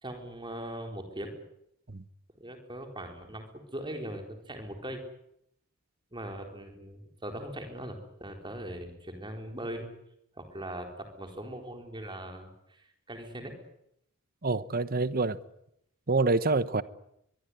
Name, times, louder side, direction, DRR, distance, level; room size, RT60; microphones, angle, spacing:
voice 1, 0.0-1.3 2.4-5.0 6.1-9.9 10.4-12.5 13.1-13.5, right 1 dB, 20° right, 4.3 m, -40 dB
voice 2, 14.4-15.4 16.1-16.8, right 3 dB, 45° right, 1.1 m, -26 dB
23.5 x 23.0 x 9.6 m
head